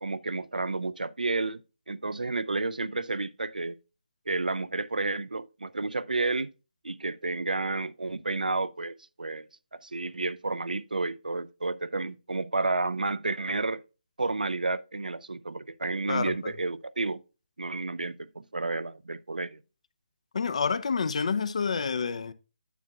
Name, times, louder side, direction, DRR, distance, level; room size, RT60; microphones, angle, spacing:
voice 1, 0.0-1.6 1.9-3.8 4.3-6.5 6.8-9.5 9.8-13.8 14.2-17.2 17.6-19.6, right 3 dB, 70° right, 0.5 m, -31 dB
voice 2, 16.1-16.5 20.3-22.3, left 5 dB, 45° left, 0.6 m, -28 dB
9.2 x 8.3 x 2.3 m
figure-of-eight pair, 145°, 5 cm